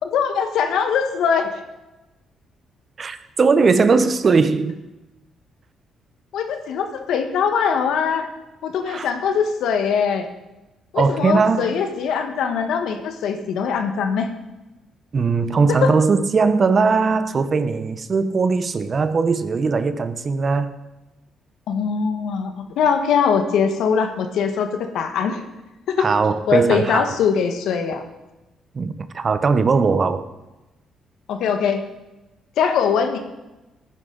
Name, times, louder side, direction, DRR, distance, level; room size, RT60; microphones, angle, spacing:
voice 1, 0.0-1.5 6.3-8.3 8.6-10.3 10.9-14.3 15.7-15.9 21.7-25.4 25.9-26.1 26.5-28.0 31.3-31.8 32.6-33.2, left 6 dB, 80° left, 1.3 m, -21 dB
voice 2, 3.0-4.8 8.9-9.1 10.9-11.7 15.1-20.7 26.0-27.1 28.7-30.2, right 4 dB, 40° right, 0.8 m, -19 dB
14.5 x 10.0 x 3.9 m
cardioid pair, 90°, 0 cm